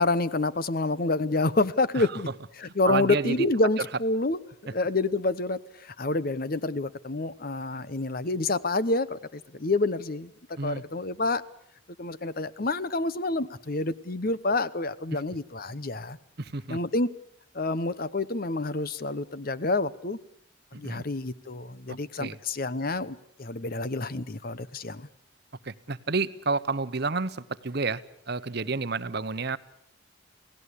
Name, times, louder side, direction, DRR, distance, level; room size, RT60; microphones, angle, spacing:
voice 1, 0.0-2.3 2.6-10.3 10.6-11.4 12.0-16.2 16.7-17.1 17.5-20.2 20.7-25.1, left 2 dB, 45° left, 16 dB, 0.8 m, -28 dB
voice 2, 2.6-3.5 10.6-10.8 16.4-16.8 20.7-21.0 21.9-22.4 25.6-28.0 28.3-29.6, right 4 dB, 50° right, 14 dB, 0.9 m, -30 dB
28.0 x 17.5 x 8.4 m, 0.74 s
head